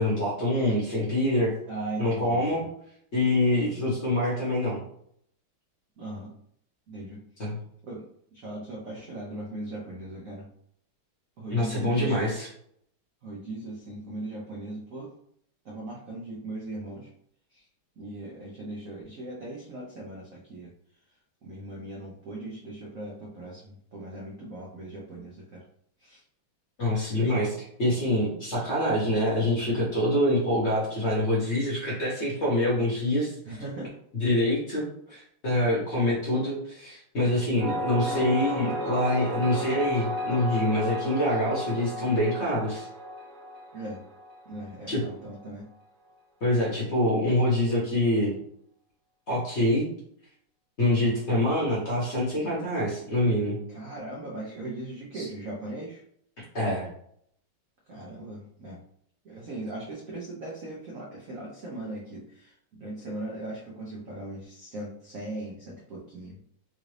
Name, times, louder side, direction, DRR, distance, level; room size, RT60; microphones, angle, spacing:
voice 1, 0.0-1.5 2.0-2.6 3.1-4.8 7.4-7.6 11.5-12.5 26.8-33.4 34.1-42.9 44.9-45.0 46.4-48.3 49.3-49.9 50.8-53.6 55.1-55.3 56.5-56.9, left 1 dB, 45° left, -5 dB, 1.0 m, -25 dB
voice 2, 1.7-2.7 6.0-6.3 6.9-7.2 7.9-8.1 8.3-10.5 11.4-12.2 13.2-15.1 15.6-17.1 17.5-17.7 18.0-20.7 21.4-25.6 26.0-26.2 33.5-33.9 43.7-44.0 44.5-45.7 53.7-56.0 57.9-58.8 59.2-66.4, right 2 dB, 75° right, -3 dB, 0.7 m, -39 dB
sound 1, 37.6-45.1, equal, 40° right, 1.1 m, -33 dB
3.9 x 2.5 x 3.2 m, 0.68 s
omnidirectional pair, 2.4 m